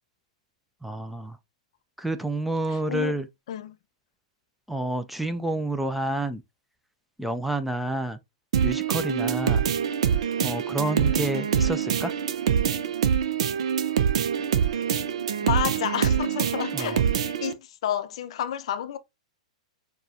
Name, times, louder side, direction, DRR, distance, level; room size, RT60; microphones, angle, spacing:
voice 1, 0.8-1.4 2.0-3.3 4.7-6.4 7.2-8.2 8.6-9.6 10.4-12.1 16.7-16.9, right 1 dB, 5° right, 0.4 m, -29 dB
voice 2, 2.7-3.2 3.5-3.8 15.4-17.0 17.4-19.0, left 10 dB, 55° left, 0.5 m, -30 dB
sound 1, 8.5-17.5, right 8 dB, 60° right, 0.6 m, -25 dB
6.5 x 2.3 x 2.7 m
figure-of-eight pair, 105°, 4 cm